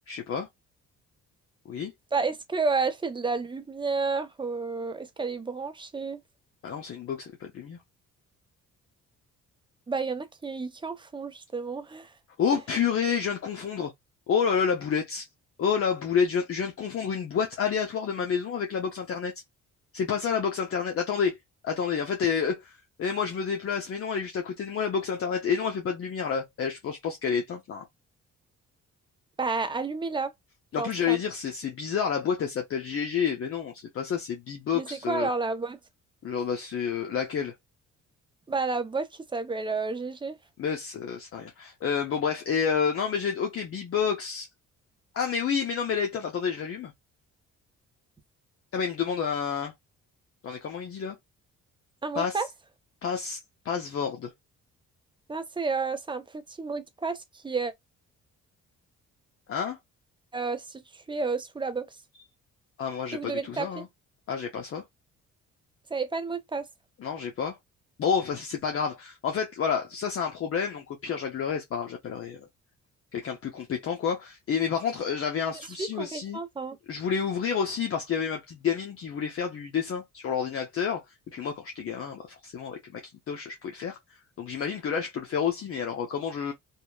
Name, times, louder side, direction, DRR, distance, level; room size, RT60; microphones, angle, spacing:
voice 1, 0.1-0.5 1.7-1.9 6.6-7.8 12.4-13.9 14.3-15.3 15.6-19.3 19.9-21.4 21.6-27.8 30.7-35.3 36.2-37.5 40.6-44.5 45.1-46.9 48.7-49.7 50.4-51.2 52.2-52.4 53.0-53.4 53.6-54.3 59.5-59.8 62.8-63.9 64.3-64.8 67.0-67.6 68.0-72.5 73.1-76.4 76.9-81.0 81.3-83.0 83.3-84.0 84.4-86.5, left 7 dB, 50° left, 0.6 m, -29 dB
voice 2, 2.1-6.2 9.9-12.1 29.4-30.3 30.7-31.2 34.7-35.8 38.5-40.4 52.0-52.5 55.3-57.7 60.3-61.9 63.1-63.8 65.9-66.7 75.8-76.8, right 4 dB, 15° right, 0.5 m, -31 dB
2.7 x 2.1 x 2.3 m
cardioid pair, 90°, 30 cm